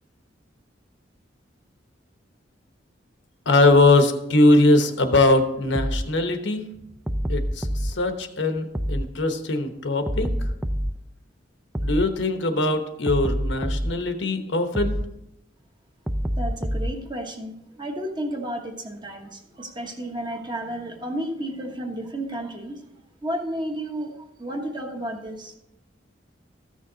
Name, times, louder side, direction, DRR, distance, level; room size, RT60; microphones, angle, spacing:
voice 1, 3.5-6.6 7.3-10.3 11.8-15.0, left 2 dB, 75° left, 6 dB, 1.0 m, -21 dB
sound 1, 5.7-6.1 7.1-7.9 8.7-9.1 10.1-11.0 11.7-12.1 13.1-14.0 14.7-15.1 16.1-17.0, equal, 10° right, 0.4 m, -26 dB
voice 2, 16.4-22.8 23.2-25.5, right 1 dB, 25° right, 3 dB, 1.1 m, -32 dB
14.0 x 6.4 x 3.9 m, 0.85 s
head